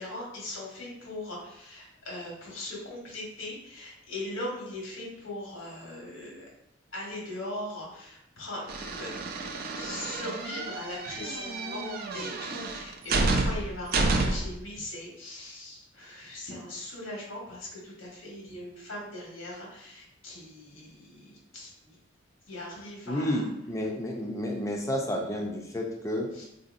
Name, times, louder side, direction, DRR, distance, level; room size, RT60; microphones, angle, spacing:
voice 1, 0.0-6.5 6.9-21.9 22.5-23.5 26.3-26.5, left 1 dB, 85° left, -2 dB, 1.2 m, -40 dB
sound 1, 8.7-14.6, right 3 dB, 50° right, 0.4 m, -30 dB
voice 2, 23.1-26.5, left 1 dB, 15° left, 0 dB, 0.5 m, -31 dB
3.8 x 2.7 x 2.5 m, 0.81 s
head